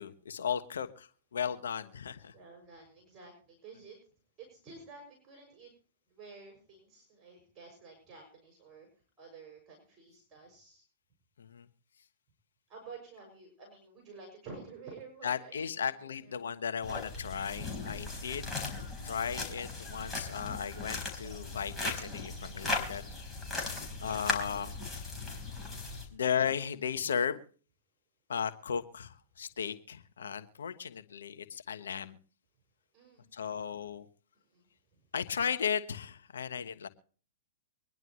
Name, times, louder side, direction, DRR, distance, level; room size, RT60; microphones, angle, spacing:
voice 1, 0.0-2.3 11.4-11.6 15.2-18.5 19.0-23.0 24.0-24.7 26.1-27.4 28.3-32.2 33.3-34.1 35.1-36.9, left 7 dB, 80° left, 9 dB, 1.2 m, -35 dB
voice 2, 2.3-4.0 4.4-5.7 6.1-8.9 9.2-10.8 12.7-15.8 16.2-16.6 24.0-24.2 32.9-33.3 34.3-35.0, right 4 dB, 25° right, 0 dB, 6.4 m, -51 dB
sound 1, 16.8-26.1, left 3 dB, 10° left, 4.4 m, -38 dB
24.5 x 10.5 x 3.1 m, 0.42 s
hypercardioid pair, 115°, 0 cm